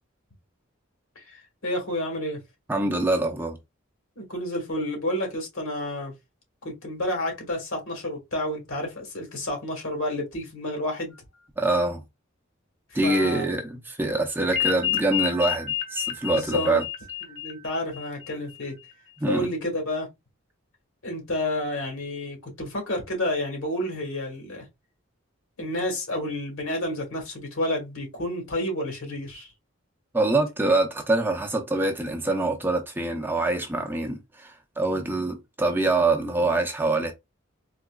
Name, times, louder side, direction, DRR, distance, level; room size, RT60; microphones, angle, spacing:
voice 1, 1.1-2.4 4.2-6.1 6.6-11.1 13.0-13.4 16.3-16.8 17.3-18.7 19.3-20.1 21.0-24.6 25.6-29.5, left 1 dB, 85° left, 1.6 m, -30 dB
voice 2, 2.7-3.6 11.6-12.0 12.9-16.8 19.2-19.5 30.1-37.1, right 2 dB, 10° right, 0.5 m, -25 dB
sound 1, 14.5-18.6, left 11 dB, 55° left, 0.9 m, -29 dB
4.0 x 2.8 x 2.3 m
head